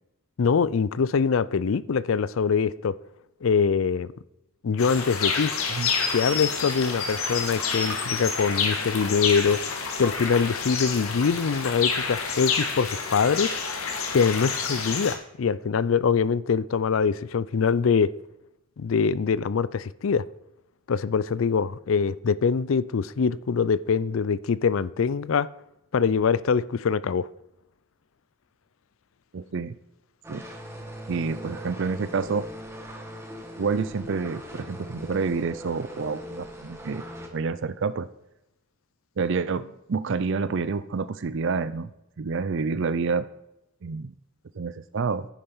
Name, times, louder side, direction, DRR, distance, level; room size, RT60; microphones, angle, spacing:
voice 1, 0.4-3.0 3.4-4.1 4.6-5.5 6.1-9.6 10.0-13.5 14.1-18.1 18.8-20.2 20.9-25.5 25.9-27.3, left 6 dB, 70° left, 0.4 m, -24 dB
sound 1, 4.8-15.1, left 5 dB, 85° left, 1.9 m, -28 dB
voice 2, 29.3-29.8 30.3-30.5 31.1-32.5 33.6-37.0 37.3-38.1 39.2-41.9 42.2-43.3 43.8-44.1 44.6-45.3, right 4 dB, 60° right, 0.5 m, -28 dB
sound 2, 30.2-37.3, equal, 15° right, 1.7 m, -40 dB
10.0 x 8.7 x 5.5 m
head